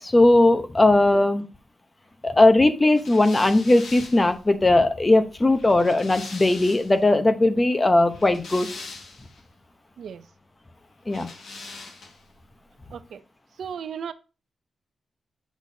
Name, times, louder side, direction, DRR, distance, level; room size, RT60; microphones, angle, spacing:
voice 1, 0.0-1.4 2.2-8.7 11.1-11.3, left 2 dB, 20° left, 0.9 m, -18 dB
sound 1, 2.9-7.0 8.0-9.4 11.1-12.3, left 3 dB, 75° left, 1.8 m, -42 dB
voice 2, 12.9-13.2 13.6-14.1, right 7 dB, 80° right, 0.6 m, -35 dB
8.2 x 6.3 x 2.8 m
wide cardioid pair, 120°, 0 cm